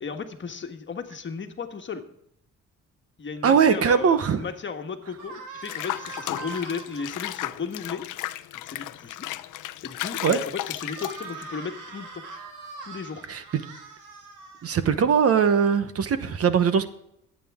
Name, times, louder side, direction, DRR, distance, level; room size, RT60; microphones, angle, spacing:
voice 1, 0.0-2.0 3.2-8.1 8.6-9.3 9.5-12.2 12.9-13.2, left 5 dB, 40° left, 5 dB, 1.5 m, -35 dB
voice 2, 3.4-4.4 10.2-10.4 13.3-13.6 14.6-16.9, right 7 dB, 50° right, 12 dB, 1.0 m, -21 dB
sound 1, 5.2-7.0 10.7-15.1, right 4 dB, 80° right, 2.5 m, -42 dB
Water / Bathtub (filling or washing), 5.6-11.6, left 15 dB, 85° left, 0.6 m, -34 dB
23.0 x 8.5 x 3.6 m, 0.75 s
cardioid pair, 90°, 30 cm